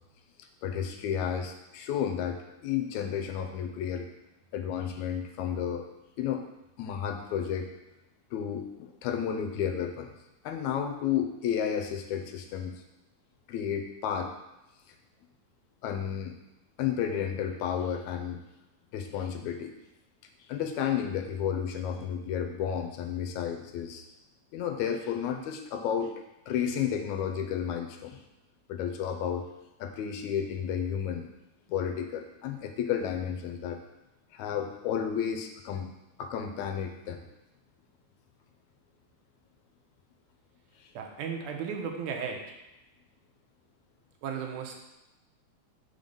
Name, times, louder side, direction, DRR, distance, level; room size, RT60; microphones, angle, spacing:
voice 1, 0.6-4.1 4.5-5.9 6.2-6.4 6.8-7.7 8.3-10.1 10.4-12.7 13.5-14.3 15.8-16.4 16.8-18.4 18.9-19.7 20.5-24.1 24.5-26.1 26.5-28.2 28.7-29.5 29.8-31.3 31.7-33.8 34.3-35.9 36.2-37.2, left 8 dB, 85° left, 5 dB, 1.9 m, -32 dB
voice 2, 41.0-42.4 44.2-44.8, right 6 dB, 85° right, 3 dB, 2.2 m, -35 dB
5.4 x 3.8 x 5.2 m, 0.96 s
omnidirectional pair, 3.4 m